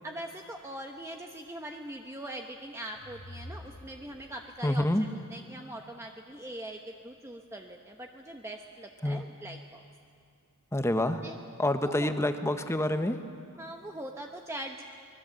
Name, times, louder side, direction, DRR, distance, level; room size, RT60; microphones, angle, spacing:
voice 1, 0.0-9.8 11.2-11.4 11.8-12.1 13.6-14.8, right 1 dB, 10° right, 2 dB, 0.9 m, -42 dB
sound 1, 2.8-4.8, equal, 70° left, 1.5 m, -48 dB
voice 2, 4.6-5.0 9.0-9.2 10.7-11.2 11.6-13.2, left 1 dB, 10° left, 8 dB, 1.0 m, -27 dB
24.5 x 20.5 x 7.5 m, 2.3 s
head